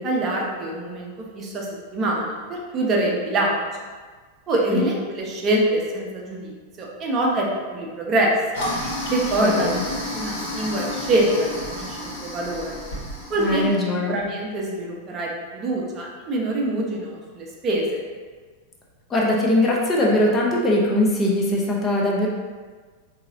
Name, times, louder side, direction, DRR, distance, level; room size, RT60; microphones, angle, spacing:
voice 1, 0.0-1.7 1.9-3.6 4.5-6.5 6.8-7.5 7.7-8.3 9.1-9.7 10.1-12.8 13.3-13.7 14.1-18.0, right 1 dB, 30° right, -2 dB, 0.6 m, -24 dB
Toilet flush, 8.5-13.8, left 1 dB, 55° left, 1.0 m, -31 dB
voice 2, 9.4-9.8 13.4-14.2 19.1-22.3, left 1 dB, 20° left, -3 dB, 0.5 m, -21 dB
3.8 x 2.7 x 2.6 m, 1.5 s
figure-of-eight pair, 90°, 0 cm